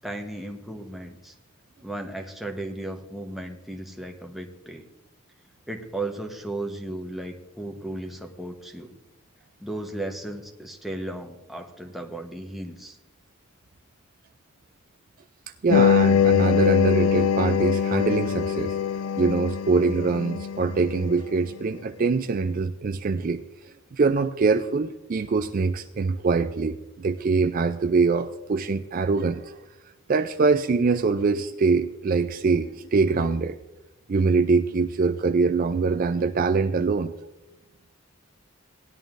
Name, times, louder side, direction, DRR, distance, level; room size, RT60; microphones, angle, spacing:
voice 1, 0.0-1.3 1.8-4.9 5.7-9.0 9.6-13.0, right 1 dB, ahead, 2 dB, 0.9 m, -35 dB
voice 2, 15.6-18.7 19.2-23.4 23.9-29.5 30.1-33.6 34.1-37.1, right 4 dB, 40° right, 9 dB, 0.3 m, -23 dB
sound 1, 15.7-21.2, left 8 dB, 85° left, 0.4 m, -23 dB
18.5 x 11.0 x 2.6 m, 0.99 s
head